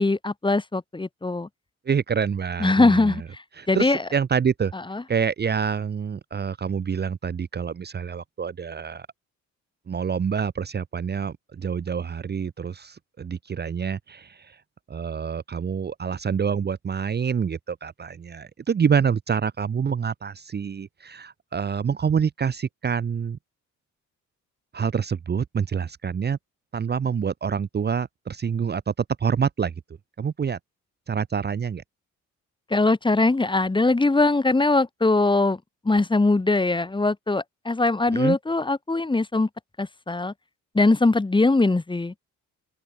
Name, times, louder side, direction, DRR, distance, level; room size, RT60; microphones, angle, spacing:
voice 1, 0.0-1.5 2.6-4.0 4.7-5.0 32.7-35.6 35.9-39.5 39.8-40.3 40.8-42.1, left 2 dB, 15° left, 1.7 m, -21 dB
voice 2, 1.9-3.1 3.6-4.7 5.1-9.1 9.9-14.6 14.9-23.4 24.7-26.4 26.7-28.9 29.2-29.7 30.2-30.6 31.1-31.8 38.1-38.4, right 6 dB, 35° right, 0.9 m, -27 dB
open air
cardioid pair, 90°, 30 cm